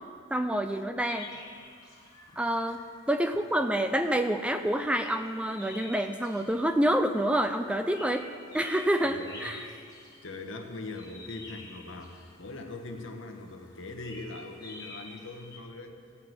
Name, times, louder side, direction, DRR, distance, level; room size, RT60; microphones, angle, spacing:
voice 1, 0.3-1.3 2.4-2.8 3.1-8.3 8.5-9.6, right 1 dB, 5° right, 7 dB, 0.3 m, -27 dB
sound 1, 1.1-15.6, left 3 dB, 15° left, 1.6 m, -50 dB
voice 2, 9.0-9.8 10.2-16.0, left 2 dB, 70° left, 4 dB, 1.2 m, -41 dB
16.0 x 5.7 x 7.9 m, 2.2 s
head